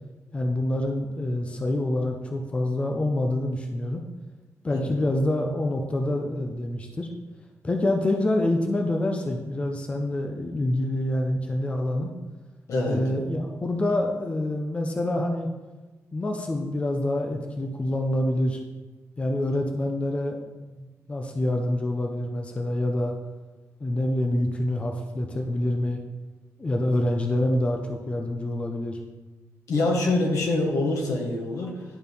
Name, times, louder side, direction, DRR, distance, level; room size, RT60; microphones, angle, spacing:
voice 1, 0.3-4.0 4.6-7.1 7.6-12.1 12.9-15.5 16.1-18.6 19.2-23.1 23.8-26.0 26.6-29.0, left 1 dB, 20° left, 3 dB, 0.6 m, -26 dB
voice 2, 12.7-13.0 27.1-27.2 29.7-31.8, left 2 dB, 80° left, -1 dB, 1.5 m, -25 dB
11.0 x 4.3 x 3.5 m, 1.2 s
wide cardioid pair, 155°, 5 cm